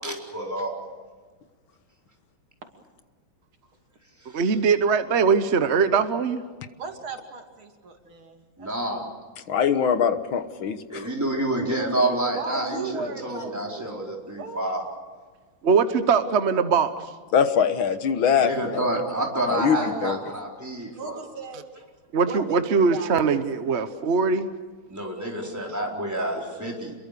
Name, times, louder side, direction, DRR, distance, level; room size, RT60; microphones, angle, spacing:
voice 1, 0.0-0.7 8.6-9.0 10.9-14.8 18.4-21.2 24.9-26.9, right 1 dB, 10° right, -1 dB, 4.3 m, -28 dB
voice 2, 4.3-6.4 15.6-16.9 22.1-24.5, right 5 dB, 45° right, 10 dB, 1.0 m, -21 dB
voice 3, 6.8-8.7 11.8-12.0 12.3-14.6 19.7-20.2 21.0-21.6 22.2-23.1, right 3 dB, 90° right, 4 dB, 3.5 m, -37 dB
voice 4, 9.5-11.1 17.3-18.9 19.5-20.2, left 7 dB, 75° left, 10 dB, 2.0 m, -23 dB
27.5 x 22.5 x 6.8 m, 1.5 s
omnidirectional pair, 2.2 m